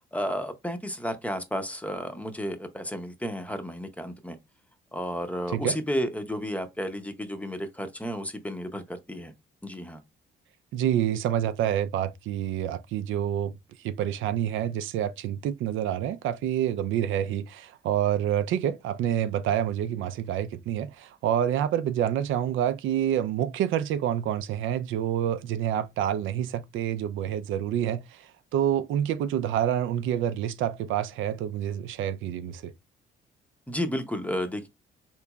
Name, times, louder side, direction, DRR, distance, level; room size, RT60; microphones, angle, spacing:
voice 1, 0.1-4.4 4.9-9.3 9.6-10.0 33.7-34.7, equal, 5° left, 0.6 m, -32 dB
voice 2, 10.7-13.5 13.8-32.7, right 10 dB, 80° right, 0.4 m, -27 dB
3.7 x 3.0 x 2.2 m
cardioid pair, 90°, 20 cm